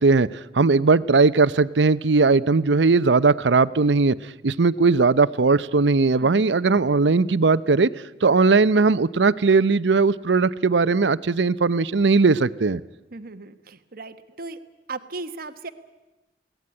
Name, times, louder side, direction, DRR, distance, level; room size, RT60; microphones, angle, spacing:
voice 1, 0.0-4.2 4.4-7.9 8.2-12.8, right 4 dB, 85° right, 16 dB, 0.7 m, -19 dB
voice 2, 6.2-6.5 13.1-14.6 14.9-15.7, right 3 dB, 55° right, 10 dB, 1.3 m, -36 dB
22.0 x 17.5 x 9.7 m, 1.1 s
head